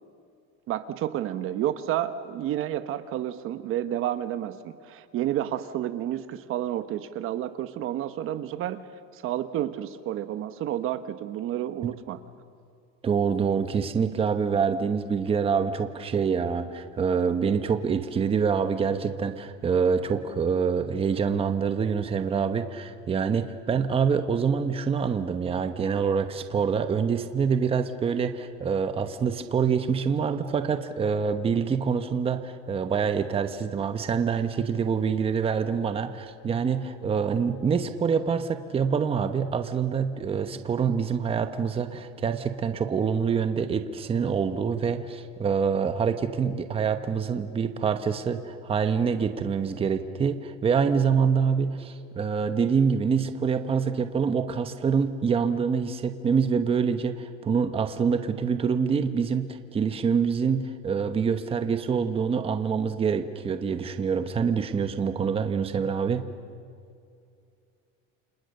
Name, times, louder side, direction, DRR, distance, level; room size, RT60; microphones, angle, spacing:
voice 1, 0.7-8.8 9.1-12.2, right 12 dB, 45° right, 11 dB, 1.1 m, -30 dB
voice 2, 13.0-66.2, right 6 dB, 20° right, 8 dB, 1.0 m, -26 dB
29.5 x 27.0 x 6.6 m, 2.4 s
cardioid pair, 170°, 30 cm